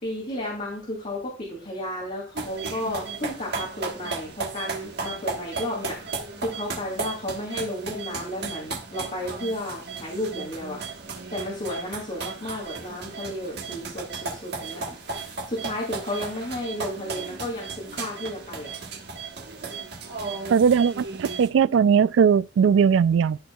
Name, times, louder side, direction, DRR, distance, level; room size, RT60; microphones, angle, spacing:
voice 1, 0.0-10.8 11.1-14.8 15.1-18.7, left 1 dB, 40° left, 2.8 m, -33 dB
sound 1, 2.4-21.5, right 4 dB, 60° right, 1.4 m, -35 dB
voice 2, 20.5-23.4, right 7 dB, 75° right, 0.3 m, -19 dB
13.0 x 4.4 x 2.3 m
head